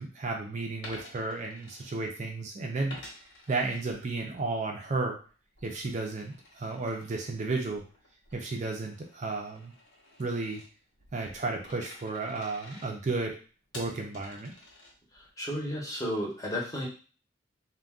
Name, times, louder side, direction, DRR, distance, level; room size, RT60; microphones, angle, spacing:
voice 1, 0.0-3.0 3.5-5.2 5.6-7.8 8.3-9.7 10.2-10.6 11.1-13.4 13.7-14.5, right 3 dB, 40° right, 1 dB, 0.4 m, -33 dB
Coin (dropping), 0.8-2.4 2.9-4.5 4.9-15.3, left 1 dB, 70° left, 1.0 m, -51 dB
voice 2, 15.1-16.9, equal, 15° left, -2 dB, 0.7 m, -33 dB
2.4 x 2.2 x 3.5 m, 0.37 s
head